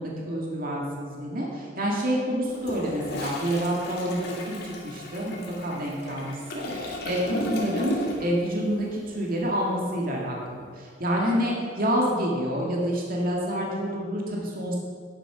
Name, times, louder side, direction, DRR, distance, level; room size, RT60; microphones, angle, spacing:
voice 1, 0.0-10.7 11.0-14.8, equal, 50° right, -2 dB, 2.1 m, -28 dB
Toilet flush, 2.5-8.4 8.7-9.0, left 1 dB, 60° left, 2.3 m, -35 dB
11.0 x 9.0 x 5.7 m, 2.1 s
head